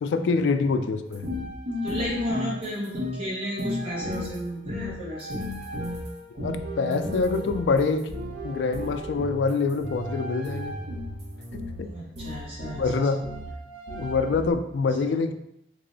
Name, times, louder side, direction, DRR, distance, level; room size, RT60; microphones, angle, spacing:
voice 1, 0.0-1.3 6.4-8.1 8.4-10.8 11.5-11.9 12.7-13.3 14.0-15.3, left 4 dB, 85° left, 9 dB, 0.3 m, -25 dB
sound 1, 1.1-14.5, left 1 dB, 70° right, 0.7 m, -34 dB
voice 2, 1.8-5.5 11.9-13.1 15.0-15.1, equal, 35° right, -7 dB, 1.0 m, -34 dB
3.3 x 2.0 x 3.7 m, 0.80 s
head